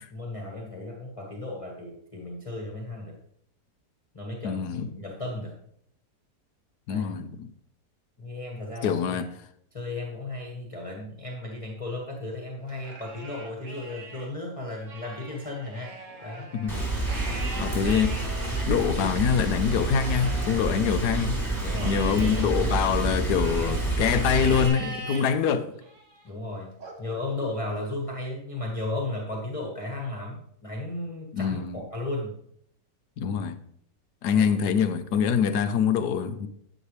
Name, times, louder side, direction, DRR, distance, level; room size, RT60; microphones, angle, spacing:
voice 1, 0.1-3.2 4.1-5.5 6.9-7.1 8.2-9.2 9.7-16.5 21.6-22.8 26.2-26.7 27.0-32.3 34.3-34.5, left 2 dB, 20° left, 1.6 m, -35 dB
voice 2, 4.4-4.9 6.9-7.5 8.8-9.3 16.5-16.7 17.6-18.3 18.7-21.4 21.8-25.7 31.3-31.8 33.2-33.6 34.2-36.5, left 7 dB, 75° left, 1.3 m, -25 dB
Livestock farm animals working animals, 12.7-14.3 14.7-21.3 21.7-23.9 24.4-25.3 25.8-26.2 26.8-27.9, right 2 dB, 50° right, 1.9 m, -42 dB
Rain, 16.7-24.7, right 2 dB, 10° right, 3.0 m, -28 dB
10.0 x 9.2 x 3.2 m
omnidirectional pair, 1.8 m